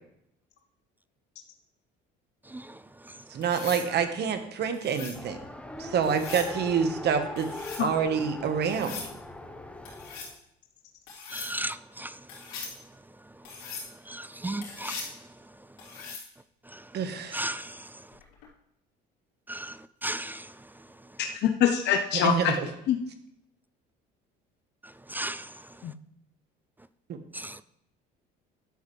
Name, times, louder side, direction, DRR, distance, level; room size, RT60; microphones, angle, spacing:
voice 1, 2.5-3.2 11.3-12.5 13.4-13.5 14.1-15.2 16.7-16.9 17.3-18.1 19.5-20.9 24.8-25.8 27.3-27.6, right 1 dB, 10° right, 0.3 m, -37 dB
voice 2, 3.3-5.4 5.8-7.5 7.8-9.0 16.9-17.5 22.1-22.7 27.1-27.2, right 7 dB, 55° right, 1.3 m, -27 dB
sound 1, 3.4-3.9 4.7-5.2 6.0-6.5 7.4-7.9 8.6-9.1 9.9-10.3 11.1-11.5 12.3-12.8 13.5-13.9 14.6-15.1 15.8-16.3 18.2-18.5, left 5 dB, 85° left, 3.3 m, -40 dB
Race car auto racing, 5.1-10.4, left 2 dB, 5° left, 0.9 m, -40 dB
voice 3, 21.4-22.5 22.9-23.0 25.8-25.9, left 9 dB, 60° left, 0.8 m, -24 dB
11.5 x 7.3 x 3.3 m
supercardioid pair, 90°, 20 cm